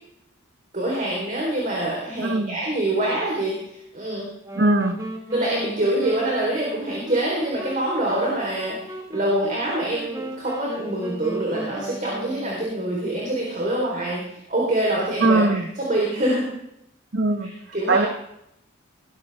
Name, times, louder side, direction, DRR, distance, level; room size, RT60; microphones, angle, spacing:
voice 1, 0.7-4.3 5.3-16.4 17.4-18.1, right 1 dB, 40° right, -3 dB, 4.0 m, -25 dB
voice 2, 2.2-2.6 4.5-5.0 15.2-15.7 17.1-17.5 17.9-18.1, right 2 dB, 55° right, 8 dB, 1.3 m, -20 dB
sound 1, 4.4-12.9, right 1 dB, 15° right, 2.0 m, -36 dB
19.5 x 13.5 x 3.6 m, 0.78 s
head